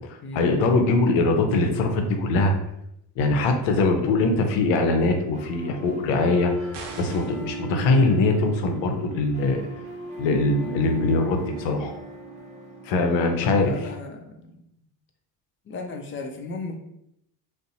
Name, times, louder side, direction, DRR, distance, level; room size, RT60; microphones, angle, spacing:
voice 1, 0.3-2.5 3.2-9.6 10.2-11.9 12.9-13.7, left 3 dB, 70° left, 5 dB, 0.6 m, -22 dB
sound 1, 5.3-13.3, right 4 dB, 15° right, 0.6 m, -38 dB
sound 2, 6.7-7.5, right 3 dB, 55° right, 0.6 m, -39 dB
voice 2, 13.4-14.6 15.7-16.8, left 3 dB, 30° left, 4 dB, 0.3 m, -36 dB
2.5 x 2.0 x 2.7 m, 0.78 s
supercardioid pair, 75°, 47 cm